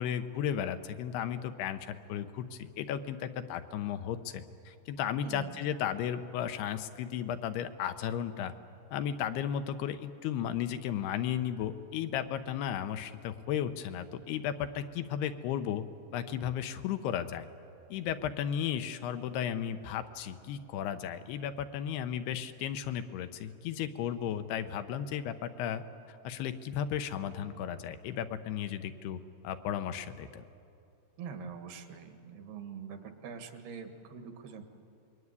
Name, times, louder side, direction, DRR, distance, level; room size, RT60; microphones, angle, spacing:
voice 1, 0.0-8.5 8.9-15.8 16.1-17.5 17.9-25.8 26.1-29.2 29.4-30.4, left 9 dB, 80° left, 9 dB, 2.9 m, -34 dB
voice 2, 5.2-5.7 31.2-34.6, right 6 dB, 70° right, 6 dB, 3.6 m, -44 dB
26.0 x 22.5 x 9.7 m, 2.5 s
omnidirectional pair, 4.7 m